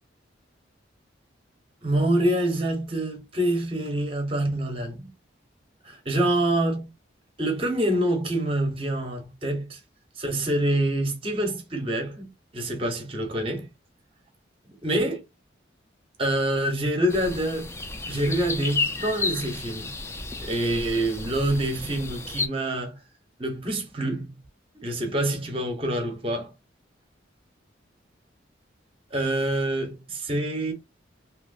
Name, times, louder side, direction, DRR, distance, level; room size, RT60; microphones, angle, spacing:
voice 1, 1.8-5.1 5.8-6.9 7.4-9.8 10.2-12.3 12.5-13.7 14.8-15.2 16.2-17.7 18.1-19.9 20.4-23.0 23.4-24.3 24.7-26.5 29.1-30.7, right 1 dB, 30° right, 0.9 m, -26 dB
sound 1, 17.1-22.5, left 3 dB, 15° left, 0.3 m, -32 dB
2.9 x 2.9 x 2.6 m
head